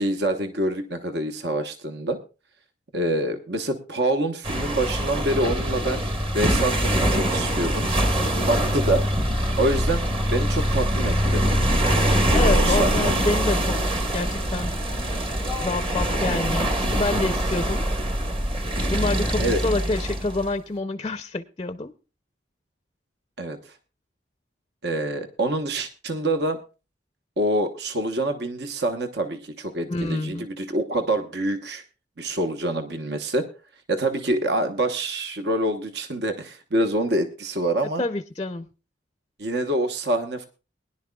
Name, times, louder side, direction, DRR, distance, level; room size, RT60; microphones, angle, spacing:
voice 1, 0.0-2.2 2.9-6.0 6.3-7.9 8.5-9.1 9.6-10.0 10.3-11.4 12.3-13.1 19.4-19.6 23.4-23.6 24.8-26.6 27.4-31.8 32.2-33.5 33.9-38.0 39.4-40.5, right 1 dB, 65° right, 7 dB, 1.1 m, -26 dB
sound 1, 4.4-20.5, equal, 30° right, 1.3 m, -23 dB
voice 2, 12.3-13.8 14.1-14.7 15.6-17.8 18.9-21.9 29.9-30.5 38.0-38.7, left 2 dB, 25° left, 11 dB, 0.5 m, -27 dB
21.5 x 11.0 x 2.3 m, 0.31 s
head